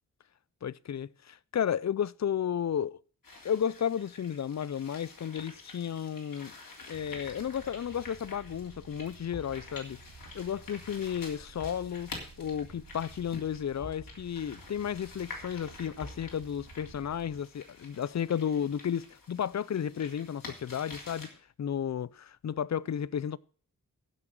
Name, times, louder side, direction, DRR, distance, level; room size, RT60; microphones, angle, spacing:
voice 1, 0.6-3.0 3.4-6.5 6.9-10.0 10.3-12.1 12.4-21.3 21.6-23.4, left 8 dB, 50° left, 0.5 m, -33 dB
sound 1, 3.2-21.3, left 3 dB, 65° left, 3.6 m, -49 dB
sound 2, 6.9-17.5, right 4 dB, 85° right, 2.2 m, -54 dB
sound 3, 9.3-20.3 20.6-20.8, left 2 dB, 85° left, 2.8 m, -53 dB
15.0 x 6.1 x 6.4 m
wide cardioid pair, 80°, 35 cm